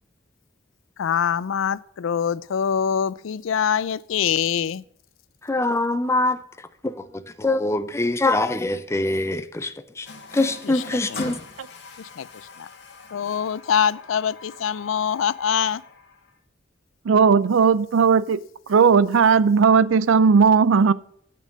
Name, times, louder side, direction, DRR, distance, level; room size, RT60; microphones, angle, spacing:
voice 1, 1.0-4.8 10.7-10.8 11.1-11.2 12.0-12.7 13.1-15.8, left 8 dB, 75° left, 0.4 m, -24 dB
voice 2, 5.4-10.1 10.3-11.4, left 2 dB, 15° left, 0.5 m, -24 dB
Water tap faucet, 10.1-16.4, left 3 dB, 60° left, 1.9 m, -42 dB
voice 3, 17.0-18.4 18.7-20.9, right 5 dB, 75° right, 0.4 m, -16 dB
8.7 x 6.3 x 6.3 m
head